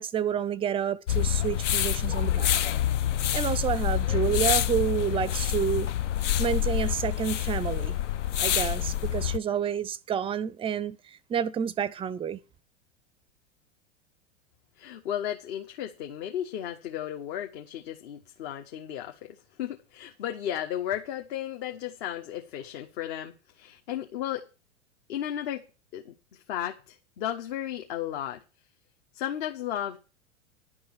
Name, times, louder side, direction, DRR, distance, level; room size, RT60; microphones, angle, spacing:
voice 1, 0.0-2.6 3.3-5.9 6.4-8.0 8.4-12.4, right 8 dB, 15° right, 0.5 m, -29 dB
sound 1, 1.1-9.4, left 11 dB, 65° left, 0.7 m, -27 dB
voice 2, 14.8-24.5 25.1-25.6 25.9-28.4 29.1-30.0, left 11 dB, 50° left, 1.3 m, -34 dB
11.0 x 5.5 x 8.5 m
figure-of-eight pair, 90°, 39 cm